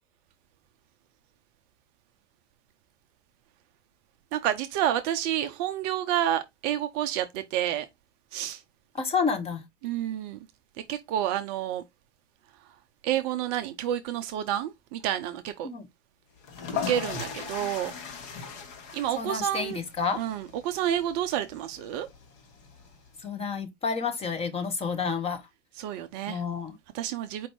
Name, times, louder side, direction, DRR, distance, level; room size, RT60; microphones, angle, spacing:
voice 1, 4.3-7.9 8.3-8.6 9.8-10.4 10.9-11.8 13.0-15.7 16.7-17.9 18.9-19.8 20.1-22.1 25.8-26.4 26.9-27.5, right 11 dB, 35° right, 0.5 m, -29 dB
voice 2, 8.9-9.6 15.6-15.9 19.2-20.2 23.2-25.4 26.3-26.8, left 5 dB, 15° left, 0.8 m, -29 dB
sound 1, 16.4-23.2, left 6 dB, 45° left, 1.1 m, -39 dB
4.6 x 2.5 x 4.4 m
hypercardioid pair, 105°, 37 cm